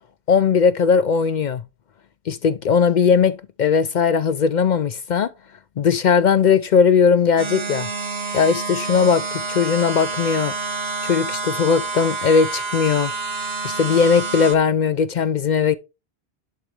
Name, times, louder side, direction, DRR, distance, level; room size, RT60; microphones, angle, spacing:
voice 1, 0.3-1.6 2.3-5.3 5.8-7.9 8.3-10.5 11.0-13.1 13.6-15.8, left 6 dB, 55° left, 0.6 m, -18 dB
sound 1, 7.4-14.6, right 3 dB, 75° right, 1.4 m, -28 dB
10.5 x 4.0 x 3.2 m
omnidirectional pair, 1.1 m